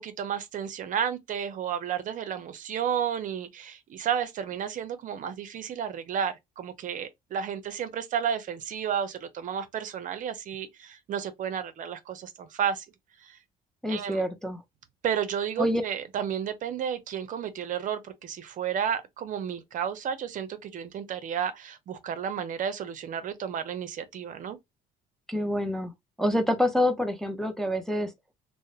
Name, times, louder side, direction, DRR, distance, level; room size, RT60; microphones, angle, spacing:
voice 1, 0.0-12.9 13.2-13.4 13.9-14.2 15.0-24.6, right 8 dB, 50° right, 0.5 m, -32 dB
voice 2, 13.8-14.6 15.6-15.8 25.3-25.9 26.2-28.1, left 1 dB, 5° left, 0.4 m, -26 dB
2.8 x 2.0 x 2.3 m
cardioid pair, 110°, 17 cm